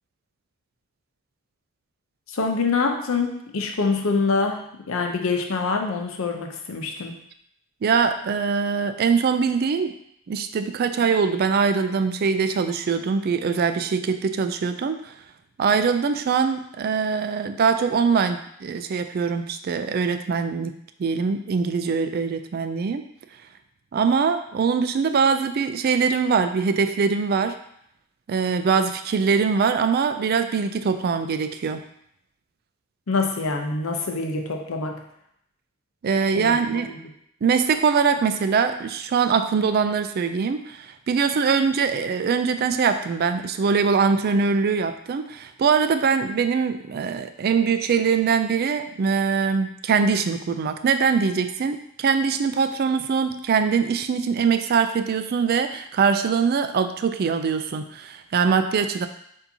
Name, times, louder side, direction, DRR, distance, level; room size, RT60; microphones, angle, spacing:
voice 1, 2.3-7.2 33.1-35.1 36.4-37.0, left 4 dB, 70° left, 3 dB, 0.6 m, -25 dB
voice 2, 7.8-9.9 10.3-15.1 15.6-20.7 21.0-23.0 23.9-27.6 28.3-31.8 36.0-36.9 37.4-59.1, right 5 dB, 45° right, 9 dB, 0.3 m, -22 dB
6.9 x 2.7 x 2.7 m, 0.72 s
head